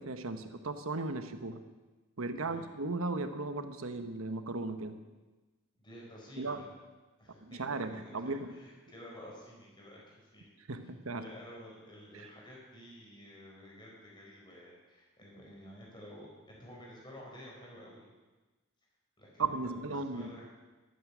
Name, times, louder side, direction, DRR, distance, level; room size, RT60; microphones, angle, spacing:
voice 1, 0.0-1.6 2.2-5.0 6.4-6.6 7.4-8.5 10.7-11.2 12.1-12.3 19.4-20.3, right 3 dB, 80° right, 9 dB, 1.1 m, -36 dB
voice 2, 5.8-6.7 7.2-10.5 10.8-10.9 11.2-18.0 19.2-20.4, equal, 20° left, -3 dB, 4.7 m, -51 dB
13.0 x 13.0 x 6.2 m, 1.2 s
head